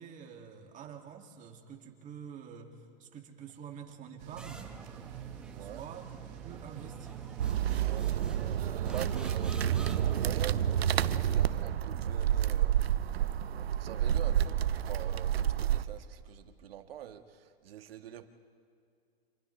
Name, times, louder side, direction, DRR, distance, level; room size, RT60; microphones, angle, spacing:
voice 1, 0.0-4.7 5.6-7.3 8.5-9.5, right 7 dB, 25° right, 2 dB, 2.3 m, -48 dB
sound 1, 4.2-11.6, right 13 dB, 45° right, 0.9 m, -48 dB
sound 2, 4.4-11.8, right 3 dB, 5° right, 1.2 m, -49 dB
voice 2, 5.5-5.8 7.8-8.6 8.9-9.6 10.2-12.8 13.8-18.3, right 11 dB, 70° right, 7 dB, 1.6 m, -46 dB
sound 3, 7.4-15.8, right 10 dB, 90° right, 0.8 m, -29 dB
29.0 x 27.0 x 3.3 m, 2.3 s
hypercardioid pair, 130°, 30 cm